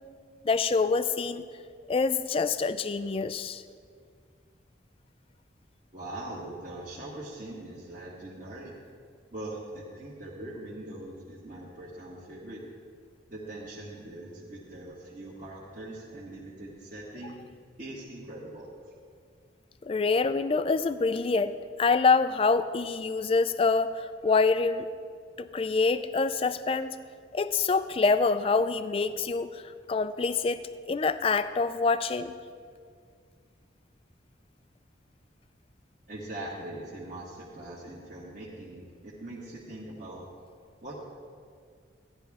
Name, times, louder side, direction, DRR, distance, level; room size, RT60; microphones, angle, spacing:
voice 1, 0.4-1.4 1.9-3.6 19.8-24.9 25.4-26.9 27.3-29.6 29.9-30.6 30.9-32.3, left 4 dB, 30° left, 12 dB, 0.3 m, -26 dB
voice 2, 5.9-8.7 9.3-12.6 13.3-17.4 17.8-18.9 36.1-40.3 40.8-41.0, right 1 dB, 40° right, -6 dB, 1.3 m, -41 dB
13.5 x 10.5 x 3.5 m, 2.1 s
head